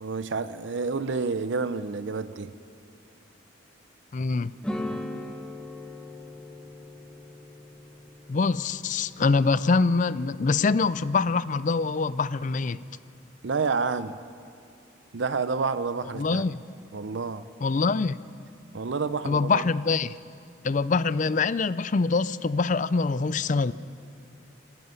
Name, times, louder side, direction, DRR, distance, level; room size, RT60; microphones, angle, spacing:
voice 1, 0.0-2.5 13.4-14.2 15.1-16.5 16.9-17.5 18.7-19.6, right 4 dB, 65° right, 0.6 m, -29 dB
voice 2, 4.1-4.5 8.3-12.8 16.2-16.6 17.6-18.2 19.3-20.2 20.6-23.7, left 4 dB, 40° left, 0.4 m, -24 dB
sound 1, 4.6-9.8, left 1 dB, 5° left, 1.2 m, -39 dB
25.5 x 10.5 x 9.6 m
head